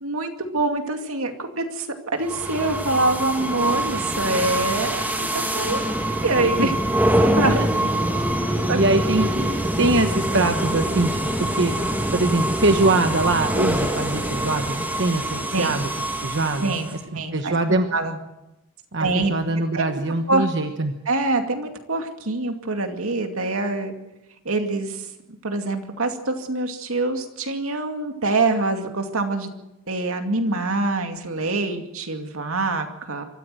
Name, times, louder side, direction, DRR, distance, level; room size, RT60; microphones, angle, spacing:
voice 1, 0.0-5.8 6.2-6.7 7.4-7.6 8.7-8.8 15.5-15.7 16.6-18.2 19.0-19.3 19.7-20.0 20.3-20.5 21.1-23.9 24.4-25.1 25.4-29.5 29.9-33.2, right 2 dB, 80° right, 5 dB, 2.4 m, -25 dB
sound 1, 2.2-17.0, right 1 dB, 10° right, 2.8 m, -24 dB
voice 2, 8.5-11.7 12.1-15.9 16.2-16.7 17.3-17.9 18.9-20.9, right 2 dB, 55° right, 6 dB, 1.2 m, -23 dB
25.0 x 14.5 x 7.7 m, 0.95 s
head